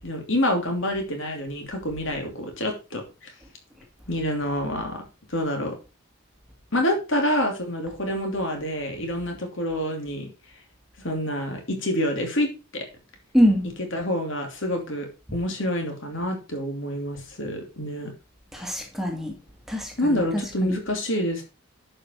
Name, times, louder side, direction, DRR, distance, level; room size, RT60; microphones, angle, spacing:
voice 1, 0.0-3.0 4.1-5.0 5.3-5.7 6.7-10.3 11.0-12.8 13.9-15.1 15.3-18.1 20.0-21.4, equal, 60° left, 3 dB, 3.0 m, -27 dB
voice 2, 13.3-13.7 18.5-19.4 19.7-20.7, equal, ahead, 2 dB, 1.6 m, -24 dB
11.0 x 5.4 x 4.6 m, 0.30 s
head